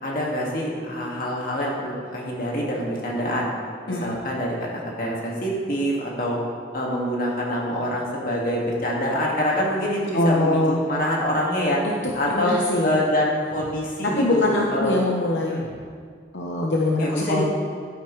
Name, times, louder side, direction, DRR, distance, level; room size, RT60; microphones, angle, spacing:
voice 1, 0.0-3.5 3.8-4.7 5.0-6.4 6.7-11.8 12.1-12.6 12.8-14.9 15.4-15.6 17.0-17.4, equal, 50° left, -3 dB, 2.0 m, -25 dB
voice 2, 10.1-10.8 12.3-13.0 14.2-15.8 16.3-17.4, left 2 dB, 75° left, -2 dB, 0.8 m, -23 dB
11.5 x 9.4 x 3.2 m, 2.1 s
head